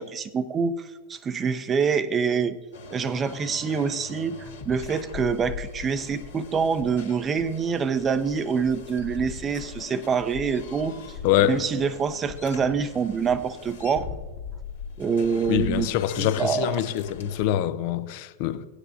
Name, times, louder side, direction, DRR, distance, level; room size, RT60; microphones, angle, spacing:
voice 1, 0.0-2.6 2.9-11.0 11.5-14.1 15.0-15.9 16.2-16.7, right 6 dB, 20° right, 0.7 m, -26 dB
sound 1, 2.7-17.4, left 6 dB, 65° left, 2.0 m, -40 dB
voice 2, 11.2-11.6 15.5-18.7, left 12 dB, 45° left, 0.7 m, -24 dB
17.0 x 10.0 x 2.8 m
figure-of-eight pair, 90°, 0 cm